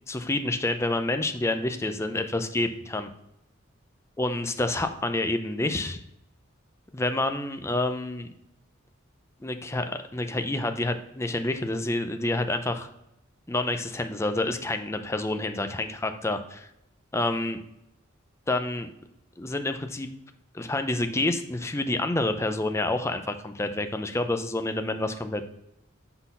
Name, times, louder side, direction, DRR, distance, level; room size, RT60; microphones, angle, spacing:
voice 1, 0.1-3.1 4.2-6.0 6.9-8.3 9.4-12.9 13.5-16.7 17.1-17.6 18.5-18.9 19.4-20.1 20.5-25.4, left 2 dB, 15° left, 8 dB, 0.5 m, -28 dB
6.1 x 3.9 x 5.5 m, 0.85 s
head